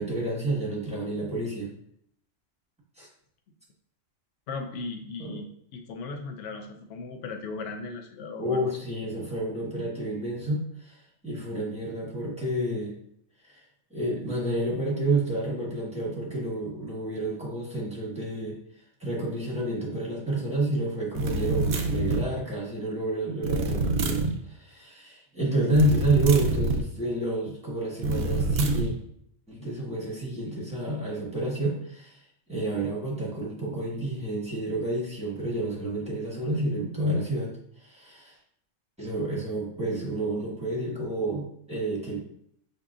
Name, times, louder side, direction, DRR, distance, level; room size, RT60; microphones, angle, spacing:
voice 1, 0.0-1.7 3.0-3.1 5.2-5.4 8.4-12.9 13.4-13.6 13.9-18.5 19.0-28.9 29.5-32.2 32.5-38.4 39.0-42.2, right 1 dB, 5° right, -6 dB, 1.2 m, -29 dB
voice 2, 4.5-8.7, left 3 dB, 70° left, 3 dB, 0.9 m, -37 dB
sound 1, 21.1-22.3 23.4-24.3 25.7-26.9 28.0-28.9, right 3 dB, 65° right, 0.8 m, -26 dB
6.6 x 2.7 x 2.4 m, 0.69 s
omnidirectional pair, 1.3 m